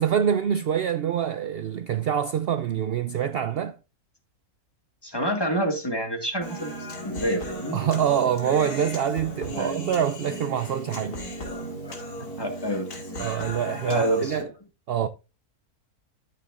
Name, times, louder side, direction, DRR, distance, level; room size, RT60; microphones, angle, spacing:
voice 1, 0.0-3.8 7.7-11.2 13.2-14.5 14.9-15.1, right 9 dB, 70° right, 0.5 m, -25 dB
voice 2, 5.0-6.7 7.0-7.8 9.5-9.7 11.4-12.0 12.4-12.9 13.8-14.5, right 1 dB, 15° left, 1.7 m, -28 dB
Human voice, 6.4-14.4, equal, 90° left, 2.8 m, -36 dB
13.0 x 7.8 x 2.4 m
omnidirectional pair, 1.6 m